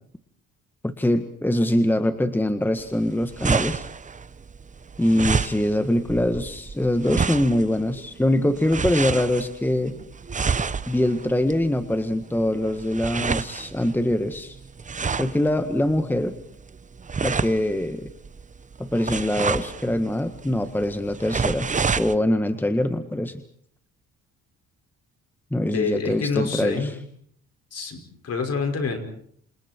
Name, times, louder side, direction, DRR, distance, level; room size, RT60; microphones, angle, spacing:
voice 1, 0.8-3.9 5.0-10.0 10.9-14.6 15.2-16.3 17.2-18.1 18.8-21.7 22.0-23.4 25.5-26.9, left 1 dB, 5° left, 9 dB, 1.6 m, -23 dB
sound 1, 2.8-22.2, right 5 dB, 25° right, 0.9 m, -30 dB
voice 2, 25.6-27.0 27.7-29.0, left 5 dB, 55° left, 5 dB, 5.8 m, -27 dB
29.0 x 27.5 x 4.6 m, 0.64 s
cardioid pair, 90°, 30 cm